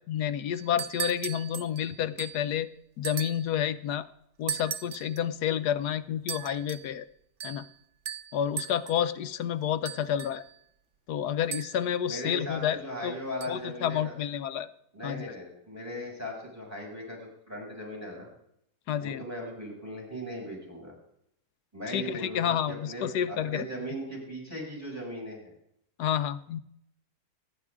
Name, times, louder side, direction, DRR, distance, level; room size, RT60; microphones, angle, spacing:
voice 1, 0.1-2.7 3.0-4.0 4.4-7.1 7.4-7.6 8.3-10.4 11.1-13.2 13.5-14.7 15.0-15.3 18.9-19.2 21.9-23.7 26.0-26.6, left 9 dB, 85° left, 12 dB, 1.3 m, -30 dB
sound 1, 0.6-2.5 3.0-3.5 4.5-5.2 6.3-6.9 7.4-7.7 8.1-9.0 9.9-10.6 11.5-12.0 13.4-13.5, right 9 dB, 60° right, 0.5 m, -38 dB
voice 2, 12.1-14.1 14.9-18.3 19.0-20.9 21.7-25.5, equal, 10° right, -2 dB, 6.7 m, -38 dB
27.0 x 11.0 x 3.7 m, 0.76 s
omnidirectional pair, 1.6 m